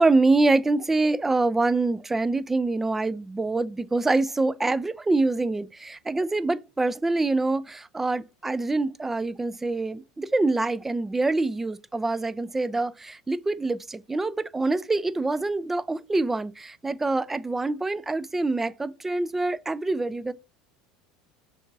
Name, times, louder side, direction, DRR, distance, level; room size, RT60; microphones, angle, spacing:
voice 1, 0.0-20.3, right 3 dB, 15° right, 0.3 m, -25 dB
6.3 x 2.7 x 2.3 m
hypercardioid pair, 75°, 2 cm